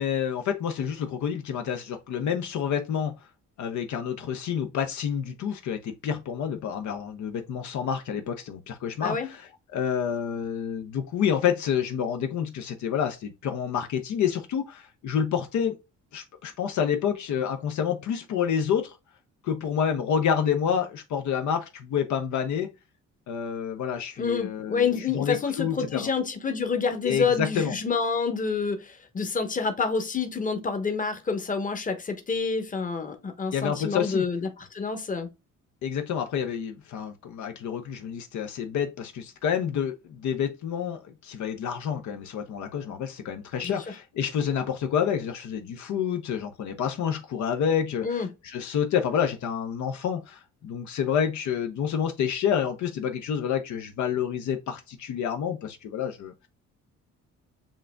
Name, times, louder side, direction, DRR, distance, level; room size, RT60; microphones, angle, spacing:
voice 1, 0.0-3.1 3.6-15.8 16.1-19.0 19.4-22.7 23.3-26.1 27.0-27.7 33.5-34.3 35.8-56.5, left 8 dB, 70° left, 0.7 m, -28 dB
voice 2, 24.2-35.3 43.6-43.8 48.0-48.3, left 5 dB, 25° left, 0.9 m, -28 dB
7.2 x 2.6 x 2.2 m
cardioid pair, 90°, 30 cm